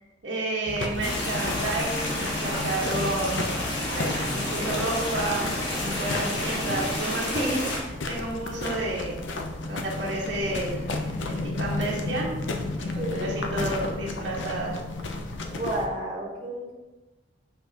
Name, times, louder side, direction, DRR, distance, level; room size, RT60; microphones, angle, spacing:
voice 1, 0.2-3.5 3.9-9.2 9.6-12.4 12.8-14.8, right 2 dB, 75° right, -4 dB, 1.6 m, -31 dB
sound 1, 0.7-15.9, left 2 dB, 85° left, 0.7 m, -33 dB
sound 2, 1.0-7.8, left 1 dB, 65° left, 1.6 m, -30 dB
voice 2, 12.9-13.3 15.4-16.7, right 1 dB, 30° right, -4 dB, 1.6 m, -31 dB
6.7 x 5.6 x 3.0 m, 1.1 s
head